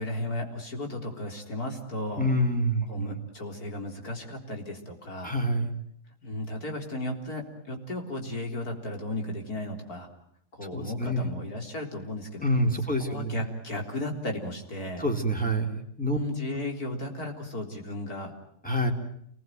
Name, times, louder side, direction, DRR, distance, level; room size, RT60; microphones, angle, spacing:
voice 1, 0.0-2.3 2.9-5.3 6.2-10.1 10.5-12.4 12.8-15.1 16.1-18.3, left 1 dB, 70° left, 3 dB, 4.4 m, -35 dB
voice 2, 2.2-3.2 5.2-5.7 10.7-11.3 12.4-13.4 15.0-16.2 18.6-18.9, equal, 5° left, 2 dB, 3.5 m, -27 dB
28.5 x 20.5 x 9.3 m, 0.72 s
omnidirectional pair, 1.7 m